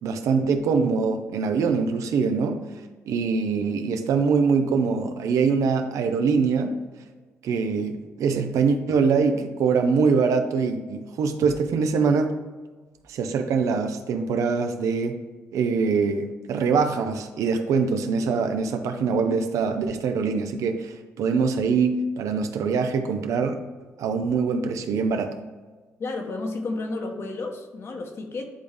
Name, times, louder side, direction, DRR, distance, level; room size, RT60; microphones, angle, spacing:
voice 1, 0.0-2.6 3.1-6.7 7.4-12.3 13.1-15.2 15.5-23.6 24.0-25.3, right 5 dB, 80° right, 7 dB, 0.7 m, -23 dB
voice 2, 26.0-28.5, left 3 dB, 50° left, 4 dB, 1.1 m, -31 dB
10.0 x 3.5 x 3.4 m, 1.3 s
cardioid pair, 90°, 5 cm